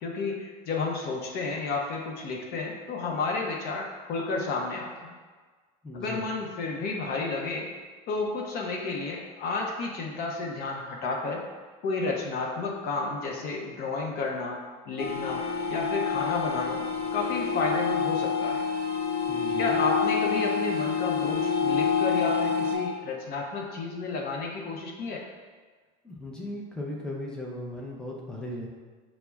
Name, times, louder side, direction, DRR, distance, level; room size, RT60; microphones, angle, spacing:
voice 1, 0.0-5.1 5.9-7.7 8.1-11.4 11.8-14.6 14.9-16.8 17.1-18.6 19.6-25.2, left 3 dB, 50° left, -1 dB, 0.6 m, -31 dB
voice 2, 5.8-6.3 19.3-19.8 26.0-28.7, left 1 dB, 5° left, -3 dB, 0.6 m, -37 dB
sound 1, 15.0-22.8, left 6 dB, 85° left, 0.8 m, -27 dB
5.7 x 2.1 x 2.3 m, 1.4 s
supercardioid pair, 105°, 20 cm